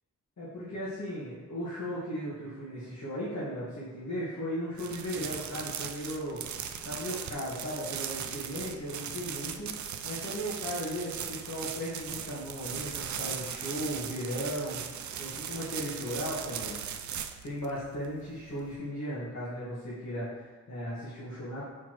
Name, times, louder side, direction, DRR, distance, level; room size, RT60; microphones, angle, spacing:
voice 1, 0.4-6.4 6.8-9.7 10.0-14.8 15.2-16.9 17.4-21.7, equal, 65° left, -9 dB, 1.6 m, -36 dB
sound 1, 4.8-18.7, right 8 dB, 75° right, 0.4 m, -38 dB
7.2 x 4.5 x 3.0 m, 1.3 s
wide cardioid pair, 135°, 30 cm